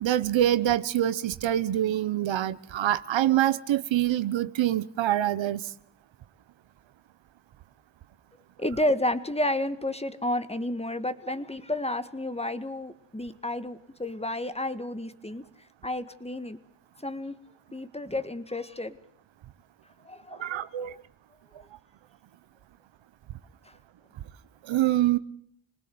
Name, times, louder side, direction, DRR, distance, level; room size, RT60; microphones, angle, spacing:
voice 1, 0.0-5.7 20.3-21.0 24.6-25.2, right 12 dB, 85° right, 1.0 m, -25 dB
voice 2, 8.6-15.5 15.8-16.6 17.0-17.3 17.7-19.0 20.0-20.9 23.7-23.8, left 1 dB, 15° left, 1.8 m, -31 dB
27.0 x 19.5 x 7.8 m
cardioid pair, 55°, 44 cm